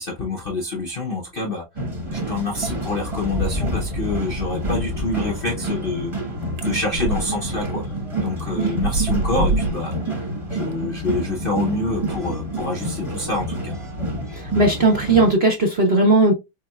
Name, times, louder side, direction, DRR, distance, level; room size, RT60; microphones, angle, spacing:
voice 1, 0.0-1.6 2.1-7.8 8.2-13.7, left 3 dB, 50° left, 0.7 m, -27 dB
sound 1, 1.8-15.3, right 1 dB, 20° right, 0.9 m, -28 dB
sound 2, 6.6-7.2 7.7-7.8 8.4-8.5 8.8-9.9, right 2 dB, 70° right, 1.4 m, -23 dB
voice 2, 14.3-16.3, right 2 dB, 45° right, 0.8 m, -17 dB
4.2 x 3.5 x 2.3 m
omnidirectional pair, 2.0 m